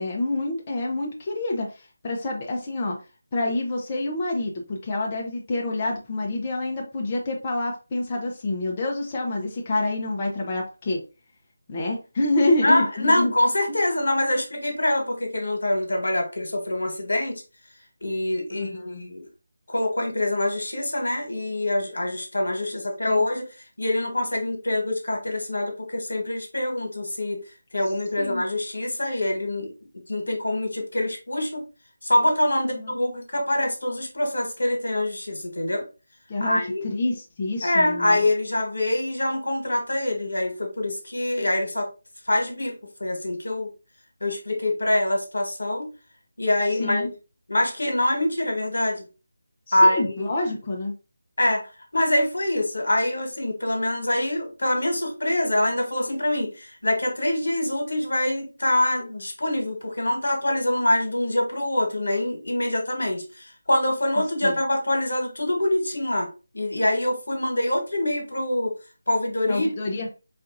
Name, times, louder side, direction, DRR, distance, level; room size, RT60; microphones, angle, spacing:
voice 1, 0.0-1.7 2.0-3.0 3.3-11.0 11.7-13.3 13.7-13.8 18.5-19.1 23.1-23.3 28.2-28.4 32.6-32.9 36.3-36.6 36.8-38.2 46.8-47.1 49.7-50.9 64.4-64.6 69.5-70.1, left 2 dB, 25° left, 0.7 m, -27 dB
voice 2, 12.6-17.3 18.0-19.2 19.7-23.5 23.8-27.4 27.7-29.7 30.1-31.6 32.0-35.8 36.4-36.8 37.6-41.9 42.3-42.7 43.0-43.7 44.2-45.9 46.4-47.1 47.5-49.1 49.7-50.3 51.4-68.7 69.1-69.7, left 1 dB, 80° left, 1.4 m, -25 dB
4.4 x 2.4 x 2.5 m
figure-of-eight pair, 170°, 0 cm